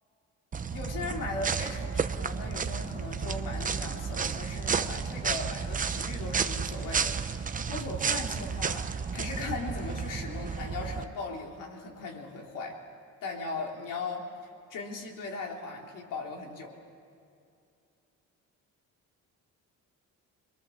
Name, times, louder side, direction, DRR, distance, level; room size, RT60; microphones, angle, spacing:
sound 1, 0.5-11.0, right 6 dB, 25° right, 0.7 m, -32 dB
voice 1, 0.7-12.8 13.2-16.8, left 3 dB, 85° left, 0 dB, 3.5 m, -38 dB
26.0 x 22.5 x 7.2 m, 2.5 s
cardioid pair, 145°, 31 cm